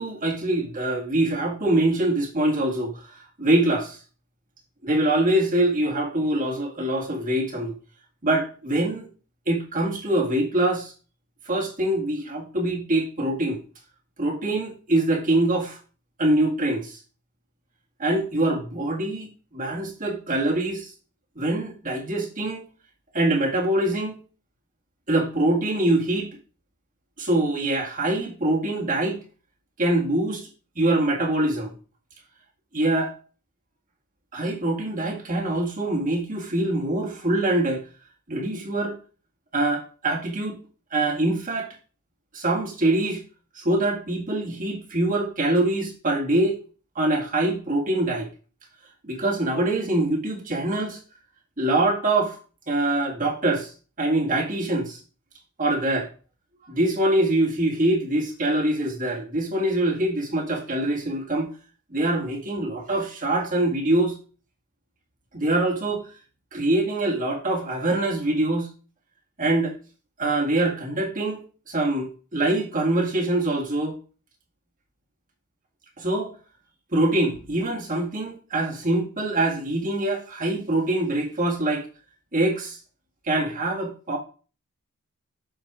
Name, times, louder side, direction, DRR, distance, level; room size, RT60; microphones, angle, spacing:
voice 1, 0.0-4.0 4.8-7.7 8.2-9.1 9.5-10.9 11.5-13.6 14.2-15.8 16.2-17.0 18.0-19.3 19.5-20.9 21.4-22.6 23.1-24.2 25.1-26.3 27.2-29.2 29.8-30.5 30.8-31.7 32.7-33.1 34.3-37.8 38.3-39.0 39.5-40.6 40.9-41.7 42.3-43.2 43.5-46.6 47.0-48.3 49.0-51.0 51.6-52.4 52.7-53.7 54.0-55.0 55.6-56.1 56.7-61.5 61.9-64.1 65.3-66.1 66.5-68.7 69.4-69.7 70.2-74.0 76.0-76.3 76.9-81.9 82.3-82.8 83.3-84.2, right 1 dB, 40° right, 1.9 m, -24 dB
7.6 x 4.5 x 4.9 m
head